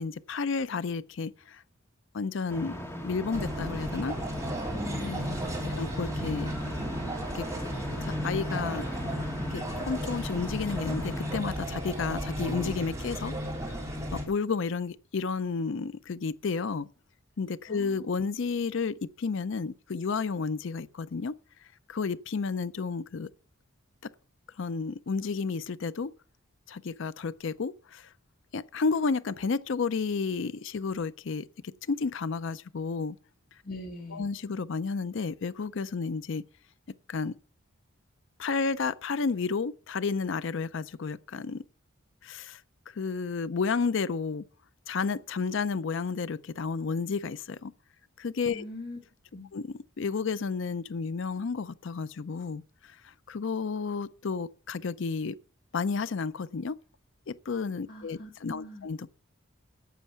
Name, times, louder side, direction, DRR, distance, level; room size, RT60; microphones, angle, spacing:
voice 1, 0.0-1.6 2.1-2.7 3.0-4.1 5.7-6.5 7.3-7.4 8.0-8.9 9.5-13.8 14.1-16.9 17.4-21.3 21.9-23.3 24.0-24.1 24.6-26.1 26.7-28.1 28.5-31.5 31.9-33.2 34.1-36.4 37.1-37.4 38.4-41.6 42.2-44.4 44.9-47.7 48.2-48.6 49.5-55.3 55.7-56.8 57.3-59.1, left 4 dB, 60° left, 0.5 m, -31 dB
sound 1, 2.5-11.4, equal, 10° left, 1.7 m, -38 dB
sound 2, 3.3-14.2, equal, 15° right, 3.3 m, -34 dB
voice 2, 4.7-5.8 17.7-18.1 33.6-34.3 48.5-49.0 49.3-49.5 57.9-58.9, left 2 dB, 45° left, 1.9 m, -42 dB
12.0 x 8.3 x 5.7 m
head